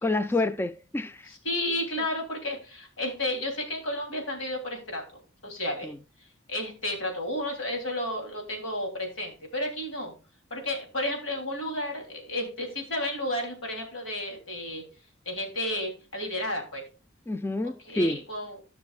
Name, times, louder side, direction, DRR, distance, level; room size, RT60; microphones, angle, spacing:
voice 1, 0.0-1.3 5.8-6.0 17.3-18.2, left 2 dB, 10° left, 0.3 m, -28 dB
voice 2, 1.3-5.0 5.4-5.9 6.5-10.1 10.5-14.9 15.2-16.8 17.8-18.6, left 1 dB, 85° left, 3.2 m, -32 dB
14.5 x 6.1 x 2.4 m
head